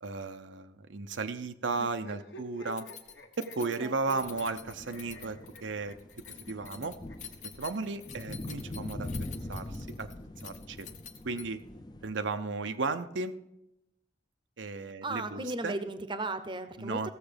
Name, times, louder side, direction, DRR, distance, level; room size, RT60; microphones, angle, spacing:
voice 1, 0.0-2.9 3.4-6.0 6.5-7.0 7.6-9.1 9.5-10.1 10.4-10.9 11.2-11.6 12.0-13.4 14.6-15.8 16.8-17.1, right 3 dB, 85° right, 8 dB, 0.7 m, -35 dB
sound 1, 1.7-7.9 8.9-10.0, equal, 75° left, 1.3 m, -52 dB
Keys jangling, 2.7-11.7, left 9 dB, 40° left, 0.9 m, -48 dB
voice 2, 3.6-4.3 15.0-17.1, right 2 dB, 25° right, 11 dB, 0.7 m, -36 dB
sound 2, 4.2-12.2, left 1 dB, 25° left, 0.5 m, -43 dB
15.5 x 7.1 x 5.1 m, 0.86 s
head